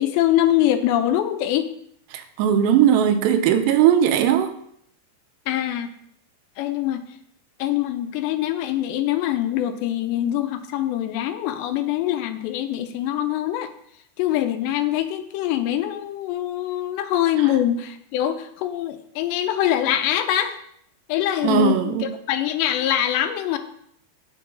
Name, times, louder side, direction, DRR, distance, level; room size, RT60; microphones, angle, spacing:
voice 1, 0.0-1.7 5.5-5.9 6.6-7.0 7.6-13.7 14.2-20.6 21.1-23.6, left 12 dB, 85° left, 2.9 m, -23 dB
voice 2, 2.1-4.5 21.4-22.1, right 9 dB, 90° right, 2.8 m, -18 dB
8.5 x 6.7 x 5.2 m
omnidirectional pair, 5.0 m